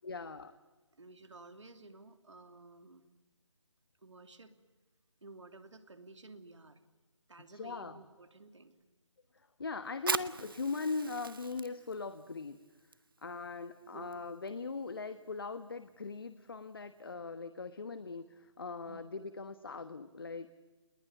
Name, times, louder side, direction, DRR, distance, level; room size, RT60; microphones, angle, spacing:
voice 1, 0.0-0.6 7.5-8.0 9.6-12.6 13.2-20.5, left 4 dB, 50° left, 11 dB, 1.3 m, -40 dB
voice 2, 0.9-3.1 4.0-4.5 5.2-6.8 7.3-8.7 13.9-14.2 18.9-19.0, right 2 dB, 75° right, 8 dB, 3.0 m, -53 dB
Fire, 9.9-17.1, right 4 dB, 45° right, 1.1 m, -43 dB
30.0 x 20.5 x 9.3 m, 1.3 s
figure-of-eight pair, 175°, 16 cm